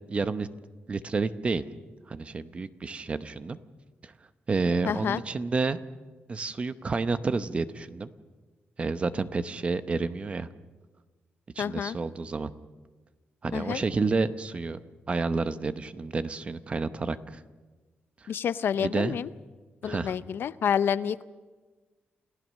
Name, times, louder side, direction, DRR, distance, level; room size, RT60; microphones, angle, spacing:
voice 1, 0.1-0.5 0.9-1.6 2.1-3.6 4.0-4.1 4.5-5.8 6.3-8.1 8.8-10.5 11.6-12.5 13.4-14.8 15.1-17.4 18.8-19.2 19.8-20.1, right 4 dB, 30° right, 12 dB, 0.8 m, -29 dB
voice 2, 4.8-5.2 11.6-12.0 13.5-13.8 18.3-19.3 19.8-21.2, left 8 dB, 65° left, 15 dB, 0.5 m, -28 dB
28.0 x 15.5 x 6.4 m, 1.3 s
wide cardioid pair, 140°, 4 cm